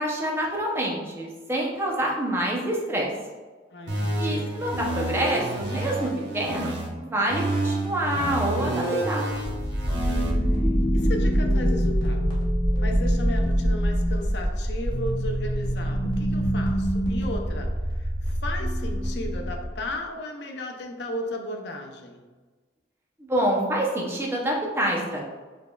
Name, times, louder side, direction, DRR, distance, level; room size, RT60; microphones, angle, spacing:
voice 1, 0.0-3.1 4.1-9.3 23.2-25.3, right 1 dB, 15° right, -2 dB, 0.6 m, -27 dB
voice 2, 3.7-4.5 10.9-12.2 12.8-22.3, left 1 dB, 70° left, 2 dB, 0.6 m, -35 dB
sound 1, 3.9-6.9 7.3-10.3, right 1 dB, 85° right, 0.9 m, -29 dB
sound 2, 9.3-19.9, equal, 25° left, 0.8 m, -25 dB
4.8 x 3.5 x 2.3 m, 1.3 s
head